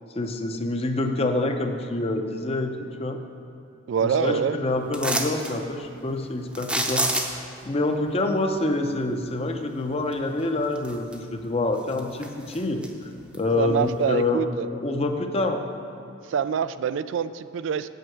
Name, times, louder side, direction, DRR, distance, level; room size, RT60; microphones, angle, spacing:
voice 1, 0.1-3.2 4.0-7.4 7.6-14.4 14.7-15.6, left 2 dB, 30° left, 5 dB, 0.6 m, -27 dB
voice 2, 3.9-4.6 13.6-14.7 16.3-17.9, right 7 dB, 70° right, 14 dB, 0.3 m, -25 dB
sound 1, 4.9-5.5 6.5-7.6 10.1-10.2 10.7-11.4 11.8-12.9 13.3-13.4, right 1 dB, 5° right, 0.7 m, -27 dB
9.2 x 5.7 x 7.8 m, 2.7 s
head